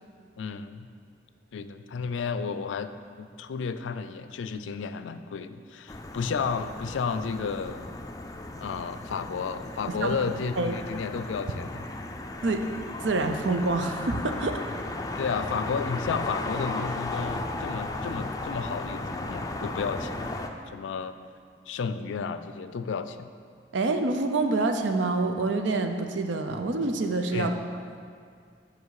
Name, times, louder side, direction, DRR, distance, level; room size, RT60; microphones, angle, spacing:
voice 1, 0.4-0.9 1.5-2.9 3.2-7.8 8.6-11.8 15.2-20.3 20.7-21.1 21.7-23.3 27.3-27.6, left 5 dB, 90° left, 11 dB, 0.4 m, -32 dB
sound 1, 5.9-20.5, left 2 dB, 20° left, 0.4 m, -35 dB
voice 2, 13.0-14.6 23.7-27.5, right 3 dB, 85° right, 6 dB, 0.6 m, -26 dB
8.0 x 5.2 x 4.8 m, 2.2 s
head